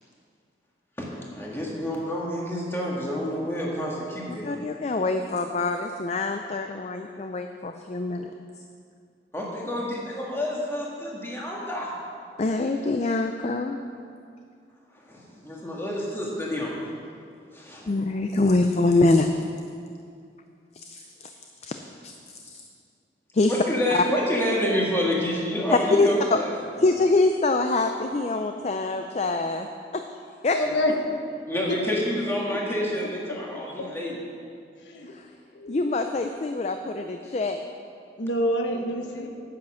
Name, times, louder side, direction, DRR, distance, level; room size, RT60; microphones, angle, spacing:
voice 1, 1.0-4.5 9.3-11.9 12.3-12.5 15.0-16.7 17.5-17.9 23.5-26.5 30.7-30.8 31.5-34.2, left 1 dB, 15° left, -4 dB, 1.7 m, -28 dB
voice 2, 4.4-8.3 12.4-13.8 17.9-19.3 20.8-21.3 21.6-21.8 22.5-22.6 23.3-23.5 23.9-24.0 26.0-26.4 26.8-29.7 30.4-30.6 35.1-35.2 35.7-37.6, left 2 dB, 35° left, 6 dB, 0.4 m, -24 dB
voice 3, 30.5-31.3 32.5-32.6 33.3-33.9 34.8-35.1 35.5-35.9 38.2-39.3, left 1 dB, 85° left, 3 dB, 1.1 m, -28 dB
9.4 x 8.6 x 6.2 m, 2.4 s
head